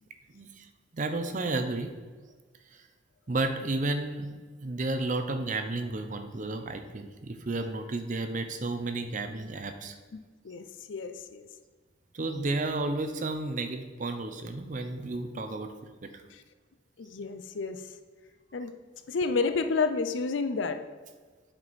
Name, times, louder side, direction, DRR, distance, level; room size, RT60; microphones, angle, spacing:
voice 1, 0.3-0.7 0.9-1.9 3.3-4.3 4.6-9.9 12.1-15.7 16.0-16.1, right 2 dB, 40° right, 7 dB, 0.5 m, -32 dB
voice 2, 10.4-11.5 16.3-16.4 17.0-17.8 18.5-18.7 19.1-20.9, left 4 dB, 70° left, 9 dB, 0.5 m, -30 dB
7.6 x 4.7 x 4.1 m, 1.4 s
head